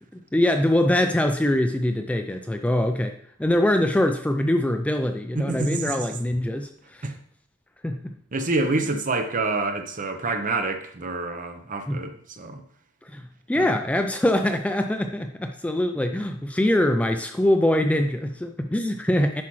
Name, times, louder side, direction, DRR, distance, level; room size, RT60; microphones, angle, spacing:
voice 1, 0.3-3.1 3.4-7.0 7.8-8.1 11.9-12.0 13.1-13.2 13.5-19.4, left 1 dB, 5° left, 6 dB, 0.3 m, -23 dB
voice 2, 5.3-6.1 7.0-7.1 8.3-12.6 13.6-13.8, right 3 dB, 40° right, 7 dB, 0.8 m, -27 dB
9.7 x 5.9 x 3.1 m, 0.62 s
head